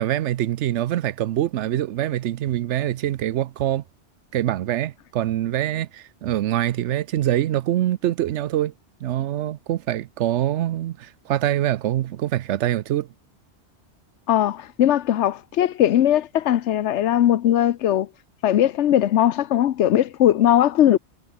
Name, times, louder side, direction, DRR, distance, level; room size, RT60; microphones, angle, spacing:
voice 1, 0.0-3.8 4.3-8.7 9.0-13.1, right 12 dB, 90° right, 0.9 m, -24 dB
voice 2, 14.3-18.1 18.4-21.0, left 11 dB, 80° left, 1.0 m, -19 dB
omnidirectional pair, 1.2 m